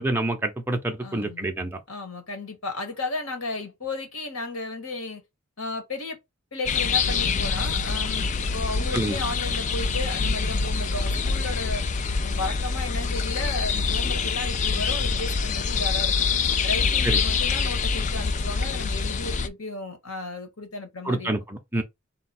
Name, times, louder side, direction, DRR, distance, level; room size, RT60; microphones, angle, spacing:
voice 1, 0.0-1.8 8.9-9.2 17.0-17.2 21.1-21.8, right 1 dB, 10° right, 0.7 m, -27 dB
voice 2, 1.0-1.4 1.9-5.2 5.6-6.2 6.5-11.8 12.2-16.3 16.6-21.3, left 2 dB, 85° left, 1.5 m, -34 dB
sound 1, 6.6-19.5, left 5 dB, 35° left, 0.3 m, -25 dB
3.9 x 2.3 x 4.3 m
head